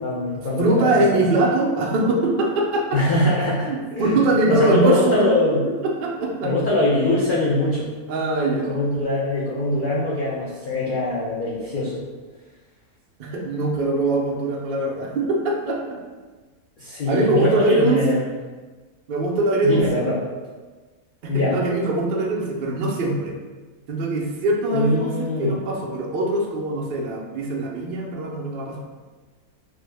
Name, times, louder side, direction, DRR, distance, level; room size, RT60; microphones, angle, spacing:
voice 1, 0.0-1.2 2.9-4.2 4.5-5.6 6.4-7.9 8.5-12.0 16.8-18.2 19.6-20.2 21.3-21.6 24.7-25.6, left 2 dB, 85° left, -7 dB, 0.4 m, -23 dB
voice 2, 0.6-3.0 3.6-5.3 5.7-6.5 8.1-8.7 13.2-16.0 17.1-18.2 19.1-20.1 21.2-23.3 23.9-28.8, right 2 dB, 70° right, -2 dB, 0.5 m, -22 dB
3.3 x 2.0 x 3.3 m, 1.3 s
omnidirectional pair, 1.6 m